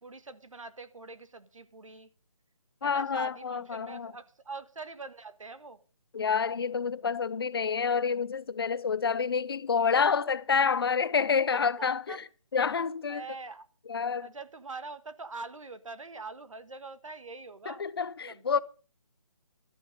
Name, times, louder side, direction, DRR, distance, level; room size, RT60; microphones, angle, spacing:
voice 1, 0.0-2.1 2.8-5.8 11.5-12.2 13.1-13.7 14.2-17.8 18.3-18.6, right 3 dB, 85° right, 1.6 m, -43 dB
voice 2, 2.8-4.1 6.1-12.2 12.5-13.2 13.9-14.3 17.7-18.6, left 6 dB, 50° left, 0.7 m, -28 dB
13.5 x 12.5 x 5.1 m
hypercardioid pair, 165°, 16 cm